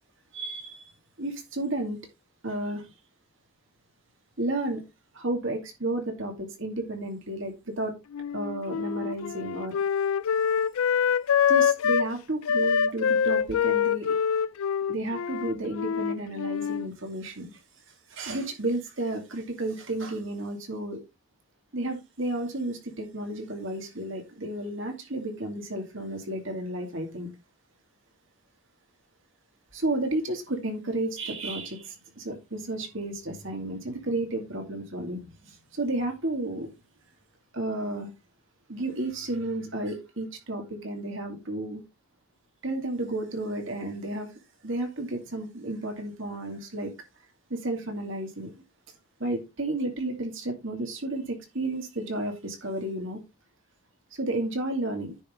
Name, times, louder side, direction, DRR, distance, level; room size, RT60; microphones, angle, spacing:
voice 1, 0.3-0.8 1.2-2.0 2.4-2.8 4.4-4.8 5.1-7.9 8.3-9.8 11.5-14.2 14.9-17.5 18.1-21.0 21.7-27.3 29.7-36.7 37.5-38.1 38.7-41.8 42.6-44.3 44.6-46.9 47.5-48.5 49.2-53.2 54.1-55.1, right 2 dB, 60° right, 2.5 m, -32 dB
Wind instrument woodwind instrument, 8.1-12.1 12.5-16.9, left 7 dB, 75° left, 0.4 m, -25 dB
9.8 x 5.8 x 3.8 m
head